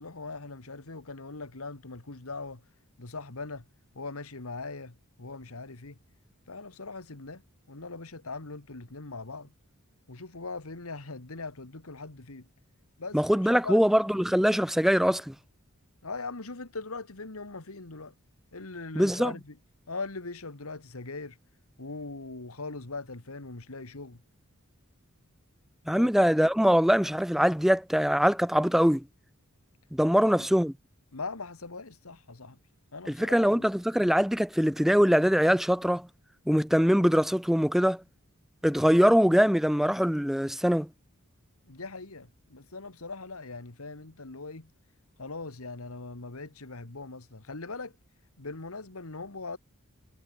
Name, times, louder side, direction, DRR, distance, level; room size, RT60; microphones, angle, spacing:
voice 1, 0.0-2.6 3.0-3.7 4.0-6.0 6.5-7.4 7.7-9.5 10.1-12.5 13.0-13.8 16.0-18.1 18.5-19.6 19.9-21.4 21.8-24.2 26.0-26.1 30.2-30.5 31.1-32.6 32.9-33.7 41.7-44.7 45.2-47.9 48.4-49.6, left 3 dB, 80° left, 1.9 m, -40 dB
voice 2, 13.1-15.3 18.9-19.3 25.9-29.1 29.9-30.7 33.1-36.1 36.5-38.0 38.6-40.9, equal, ahead, 0.6 m, -23 dB
head